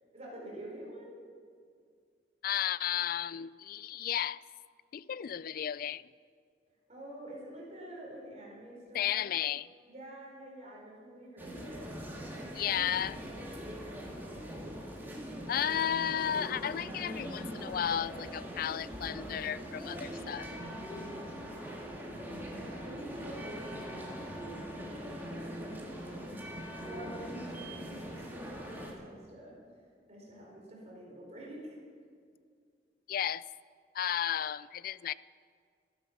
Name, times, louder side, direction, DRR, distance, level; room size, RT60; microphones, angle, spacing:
voice 1, 0.1-1.1 6.9-9.3 9.9-12.2 12.5-14.8 21.1-26.3 26.8-29.5 30.1-31.8, right 1 dB, 40° right, -3 dB, 4.6 m, -48 dB
voice 2, 2.4-4.4 4.9-6.0 8.9-9.7 12.5-13.2 15.5-20.5 33.1-33.4 33.9-35.1, left 10 dB, 55° left, 19 dB, 0.3 m, -33 dB
sound 1, 11.4-28.9, equal, 10° right, 2.1 m, -42 dB
14.0 x 12.0 x 5.9 m, 2.1 s
head